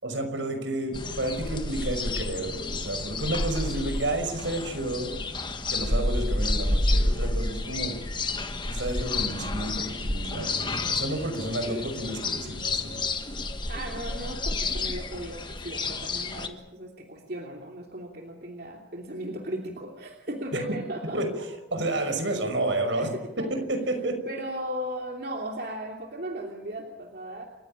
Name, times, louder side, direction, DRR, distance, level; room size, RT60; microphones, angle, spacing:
voice 1, 0.0-5.3 5.7-8.0 8.7-13.0 20.5-20.6 21.1-21.3 21.7-23.1 23.4-24.2, right 1 dB, 75° right, 6 dB, 5.7 m, -30 dB
sound 1, 0.9-16.5, left 2 dB, 25° left, 1.6 m, -30 dB
voice 2, 13.7-21.5 22.9-23.5 24.3-27.4, right 1 dB, 55° right, 1 dB, 2.9 m, -36 dB
29.0 x 15.5 x 8.9 m, 1.0 s
head